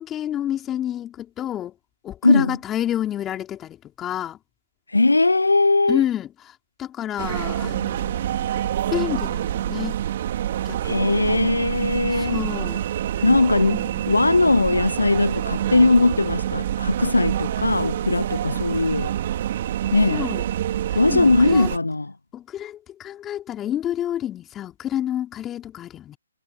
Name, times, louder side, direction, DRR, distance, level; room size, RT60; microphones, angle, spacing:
voice 1, 0.0-1.8 2.0-4.4 5.9-8.5 8.9-10.0 10.6-11.2 12.1-12.8 13.7-14.0 20.1-20.5 20.9-21.7 22.3-26.2, left 11 dB, 15° left, 4.1 m, -29 dB
voice 2, 2.2-2.6 4.9-6.0 10.8-12.4 13.2-19.1 19.9-20.3 20.9-22.1, left 2 dB, 90° left, 0.4 m, -19 dB
sound 1, 7.2-21.8, right 11 dB, 45° right, 3.7 m, -26 dB
figure-of-eight pair, 140°, 0 cm